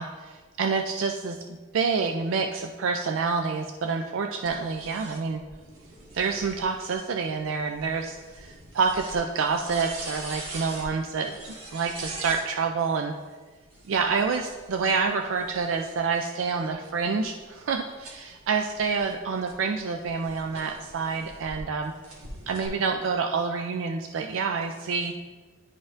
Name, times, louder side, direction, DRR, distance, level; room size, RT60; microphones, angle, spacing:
voice 1, 0.0-1.4 1.7-5.4 6.1-13.1 13.9-21.9 22.5-25.1, right 5 dB, 65° right, 4 dB, 0.3 m, -28 dB
sound 1, 4.5-12.5 13.6-16.0 16.5-21.6 22.0-22.7, right 2 dB, 90° right, 1.4 m, -44 dB
10.5 x 4.0 x 2.5 m, 1.4 s
head